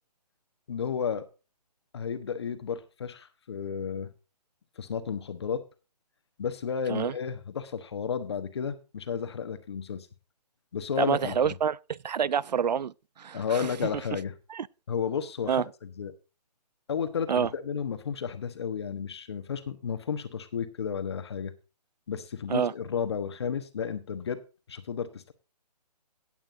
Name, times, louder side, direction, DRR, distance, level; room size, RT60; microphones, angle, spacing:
voice 1, 0.7-1.2 1.9-4.1 4.8-5.6 6.4-10.1 10.7-11.5 13.3-14.3 14.9-16.1 16.9-21.5 22.1-24.4 24.7-25.3, left 7 dB, 40° left, 1.2 m, -32 dB
voice 2, 11.0-13.7 14.5-14.7 15.5-15.6 17.3-17.5 22.5-22.7, right 7 dB, 80° right, 0.5 m, -27 dB
17.0 x 8.9 x 2.7 m
hypercardioid pair, 170°, 21 cm